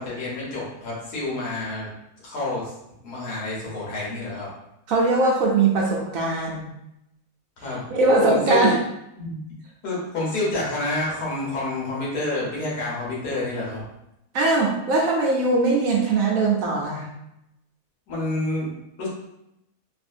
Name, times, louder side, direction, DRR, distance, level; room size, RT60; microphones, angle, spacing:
voice 1, 0.0-1.9 2.2-2.6 3.0-4.5 7.6-7.9 8.2-8.7 9.2-9.4 9.8-13.8 18.1-18.7 19.0-19.1, left 2 dB, 80° left, -6 dB, 1.6 m, -28 dB
voice 2, 4.9-6.6 7.9-8.7 14.3-17.1, right 3 dB, 70° right, -1 dB, 0.9 m, -20 dB
3.4 x 2.4 x 2.5 m, 0.84 s
omnidirectional pair, 1.7 m